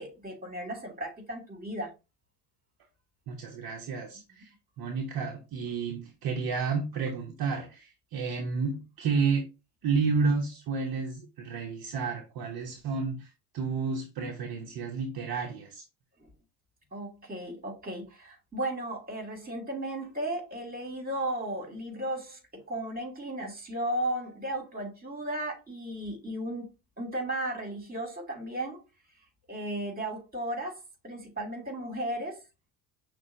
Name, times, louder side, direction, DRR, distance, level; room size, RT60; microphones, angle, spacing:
voice 1, 0.0-1.9 16.2-16.3 16.9-22.4 22.7-26.7 27.0-28.8 29.5-30.8 31.0-32.4, right 1 dB, 20° right, 2.2 m, -35 dB
voice 2, 3.3-4.5 4.8-9.4 9.8-15.8, right 5 dB, 50° right, 0.9 m, -31 dB
6.1 x 2.3 x 2.6 m
hypercardioid pair, 70°, 47 cm